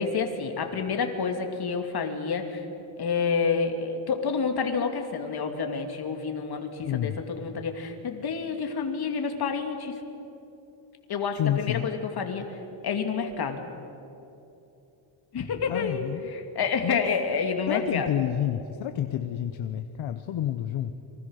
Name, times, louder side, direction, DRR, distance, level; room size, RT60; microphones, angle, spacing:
voice 1, 0.0-2.7 3.0-9.9 11.1-12.6 12.8-13.6 15.3-18.1, left 5 dB, 50° left, 4 dB, 2.8 m, -29 dB
voice 2, 6.8-7.2 11.4-11.9 15.7-16.3 16.8-17.0 17.7-20.9, left 11 dB, 70° left, 8 dB, 1.1 m, -29 dB
29.5 x 24.0 x 6.6 m, 2.9 s
cardioid pair, 145°, 49 cm